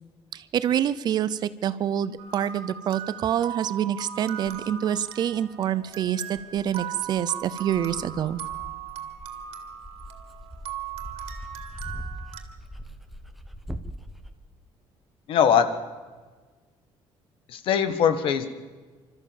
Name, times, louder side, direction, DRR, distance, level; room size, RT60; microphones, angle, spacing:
voice 1, 0.3-8.4, right 10 dB, 45° right, 15 dB, 0.6 m, -26 dB
sound 1, 2.2-12.4, right 9 dB, 75° right, 2.2 m, -38 dB
Dog, 4.4-4.6 5.4-5.5 6.4-14.3, equal, ahead, 0.9 m, -41 dB
voice 2, 15.3-15.7 17.5-18.5, left 8 dB, 60° left, 11 dB, 1.5 m, -21 dB
27.0 x 13.5 x 7.4 m, 1.4 s
cardioid pair, 175°, 10 cm